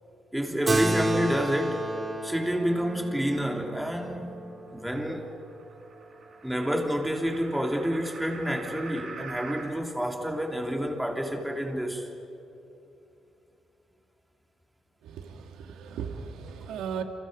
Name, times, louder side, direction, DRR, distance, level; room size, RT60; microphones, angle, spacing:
voice 1, 0.3-1.9 2.2-4.4 4.7-5.3 6.4-12.1, equal, 5° right, 1 dB, 3.2 m, -29 dB
Keyboard (musical), 0.7-5.5, right 1 dB, 25° right, 2.9 m, -31 dB
sound 1, 3.1-9.7, right 4 dB, 60° right, 6.1 m, -46 dB
voice 2, 15.0-17.0, right 7 dB, 85° right, 5 dB, 1.9 m, -37 dB
29.5 x 27.0 x 5.2 m, 2.9 s
cardioid pair, 90°, 0 cm